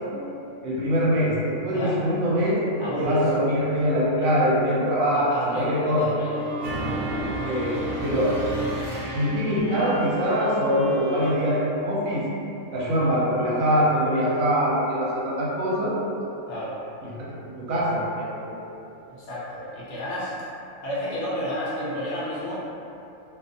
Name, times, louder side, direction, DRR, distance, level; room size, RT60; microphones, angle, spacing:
voice 1, 0.6-2.6 3.0-6.0 7.4-8.4 9.1-12.3 12.7-15.9 17.3-18.6, equal, 80° right, -7 dB, 1.1 m, -23 dB
voice 2, 1.7-2.0 2.8-3.2 5.1-6.5 16.5-16.8 19.2-20.3 20.8-22.7, equal, 60° left, -9 dB, 0.9 m, -31 dB
Bowed string instrument, 6.3-12.6, right 1 dB, 10° right, 0.3 m, -36 dB
sound 1, 6.6-9.8, right 1 dB, 65° right, 0.8 m, -32 dB
2.5 x 2.4 x 2.5 m, 2.8 s
omnidirectional pair, 1.4 m